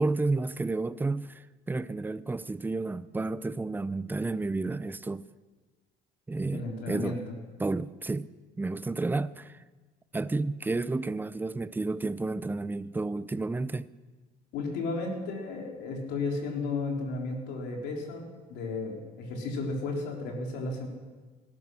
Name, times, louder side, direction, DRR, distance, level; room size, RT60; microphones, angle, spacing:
voice 1, 0.0-5.3 6.3-7.2 7.6-8.3 8.6-9.6 10.1-13.9, right 3 dB, 10° right, 0.5 m, -31 dB
voice 2, 6.5-7.2 14.5-20.9, left 3 dB, 90° left, 3.6 m, -33 dB
18.5 x 12.5 x 6.3 m
cardioid pair, 110°, 17 cm